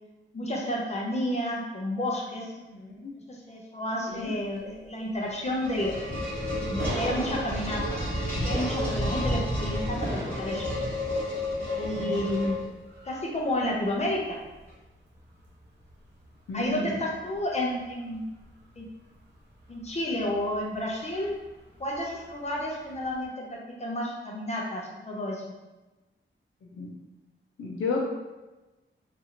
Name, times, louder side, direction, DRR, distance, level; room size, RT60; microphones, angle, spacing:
voice 1, 0.3-2.5 3.3-6.0 6.7-8.0 8.4-10.1 10.4-10.6 11.8-12.6 13.0-14.4 16.5-18.3 18.8-18.9 19.7-21.3 21.8-23.4 23.8-25.4, left 1 dB, 35° left, -2 dB, 0.6 m, -31 dB
voice 2, 2.7-3.1 4.1-4.4 11.9-12.2 16.5-16.9 26.7-26.9 27.6-28.0, left 3 dB, 90° left, -2 dB, 0.5 m, -32 dB
sound 1, 5.2-13.0, left 1 dB, 10° left, 1.2 m, -30 dB
sound 2, 5.3-23.2, right 1 dB, 55° right, 0.9 m, -44 dB
2.9 x 2.5 x 2.8 m, 1.1 s
wide cardioid pair, 135°, 21 cm